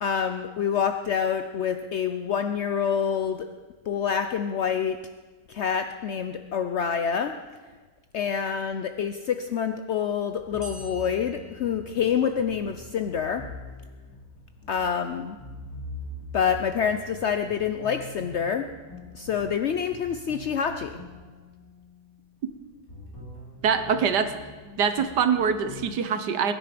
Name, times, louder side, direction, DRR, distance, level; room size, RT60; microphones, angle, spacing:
voice 1, 0.0-3.5 3.9-5.0 5.5-7.3 8.1-13.4 14.7-15.4 16.3-18.7 19.1-21.0, left 7 dB, 75° left, 7 dB, 0.6 m, -27 dB
sound 1, 10.3-25.8, left 2 dB, 50° left, 4.0 m, -44 dB
sound 2, 10.6-12.5, right 1 dB, 15° left, 2.9 m, -47 dB
voice 2, 23.6-24.3 24.8-26.5, right 6 dB, 70° right, 9 dB, 1.5 m, -24 dB
22.0 x 10.5 x 5.1 m, 1.4 s
omnidirectional pair, 1.9 m